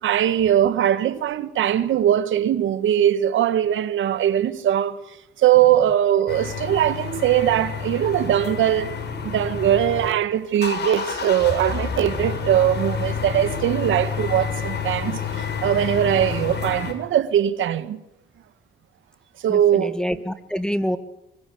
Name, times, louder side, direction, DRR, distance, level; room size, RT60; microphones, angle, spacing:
voice 1, 0.0-5.0 5.4-8.9 9.2-18.0 19.4-19.9, right 11 dB, 75° right, 1.7 m, -21 dB
sound 1, 6.3-10.1 10.4-16.9, left 6 dB, 55° left, 6.0 m, -29 dB
voice 2, 19.5-21.0, equal, 5° left, 1.9 m, -26 dB
25.0 x 25.0 x 8.5 m
cardioid pair, 90°, 20 cm